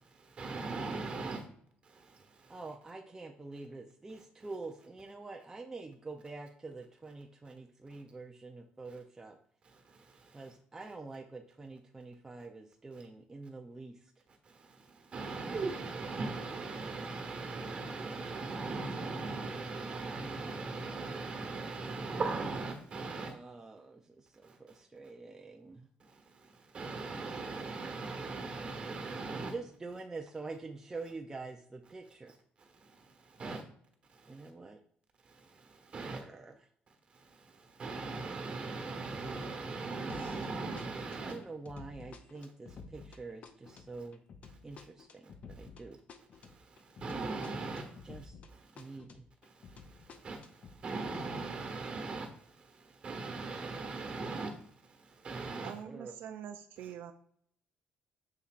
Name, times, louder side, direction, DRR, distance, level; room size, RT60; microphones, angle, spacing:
voice 1, 0.2-1.4 1.9-2.6 9.7-10.5 14.4-23.3 24.4-24.6 26.0-29.5 32.8-33.6 34.1-34.5 35.3-36.2 37.1-41.4 43.7-43.8 44.8-44.9 45.5-45.7 46.4-49.0 49.4-54.7 55.0-55.8 56.8-56.9, right 3 dB, 30° right, 4 dB, 1.4 m, -40 dB
voice 2, 2.5-9.4 10.3-14.0 23.1-25.9 29.3-32.3 33.4-33.6 34.3-34.8 36.0-36.6 41.2-44.2 44.6-46.0 48.0-48.3 48.8-49.2 55.8-56.2, right 3 dB, 15° right, 2 dB, 0.6 m, -46 dB
sound 1, 40.1-40.5 40.8-48.5 48.8-50.8, left 4 dB, 40° left, 0.6 m, -52 dB
voice 3, 55.6-57.1, right 9 dB, 70° right, 7 dB, 0.5 m, -44 dB
6.9 x 5.9 x 2.5 m, 0.64 s
cardioid pair, 140°, 3 cm